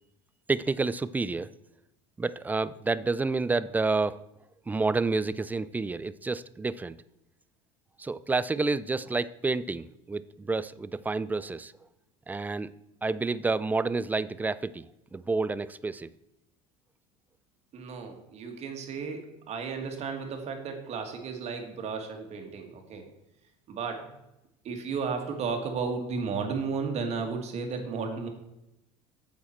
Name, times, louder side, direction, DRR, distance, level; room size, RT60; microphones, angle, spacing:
voice 1, 0.5-1.5 2.2-4.2 4.7-7.0 8.0-11.7 12.3-12.7 13.0-14.8 15.1-16.1, right 3 dB, 10° right, 16 dB, 0.3 m, -29 dB
voice 2, 17.7-23.1 23.7-24.2 24.6-28.3, right 5 dB, 45° right, 4 dB, 1.9 m, -34 dB
8.5 x 7.3 x 4.5 m, 0.88 s
supercardioid pair, 115°, 15 cm